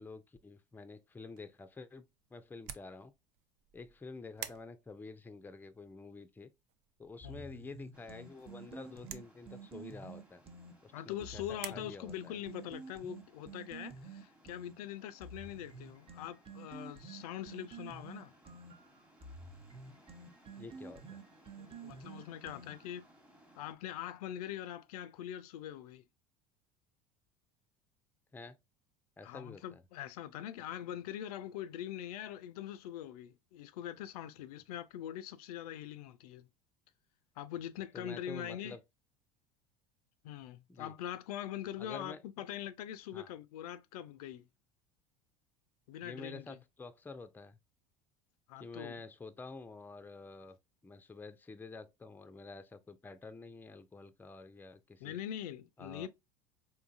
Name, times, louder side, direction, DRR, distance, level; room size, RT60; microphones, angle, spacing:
voice 1, 0.0-2.1 2.3-3.1 3.7-6.5 7.0-10.4 10.8-11.4 11.7-12.4 20.6-21.2 28.3-28.6 29.2-29.8 37.9-38.8 40.7-40.9 41.8-42.2 43.1-43.3 46.0-47.6 48.6-50.6 50.8-55.2 55.8-56.1, left 3 dB, 10° left, 0.4 m, -49 dB
sound 1, 1.1-11.7, right 11 dB, 55° right, 0.5 m, -52 dB
sound 2, 7.2-10.7 11.2-14.7 15.2-23.0, right 4 dB, 30° right, 0.9 m, -50 dB
sound 3, 7.9-23.7, equal, 5° right, 1.1 m, -64 dB
voice 2, 10.9-18.3 21.6-23.0 23.6-26.0 29.2-36.5 37.4-38.8 40.2-44.4 45.9-46.6 48.5-49.0 55.0-56.1, left 11 dB, 75° left, 0.4 m, -43 dB
3.7 x 2.7 x 2.5 m
hypercardioid pair, 75°, 20 cm